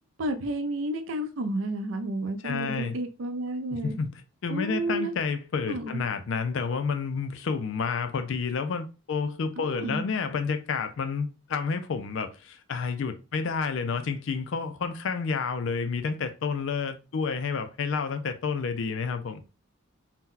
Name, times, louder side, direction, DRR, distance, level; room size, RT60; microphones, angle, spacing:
voice 1, 0.2-4.0 4.5-5.1 5.7-6.0 9.6-10.1, right 1 dB, 70° right, 0.5 m, -31 dB
voice 2, 2.4-3.0 3.7-19.4, left 5 dB, 65° left, 0.4 m, -30 dB
2.7 x 2.2 x 3.7 m
head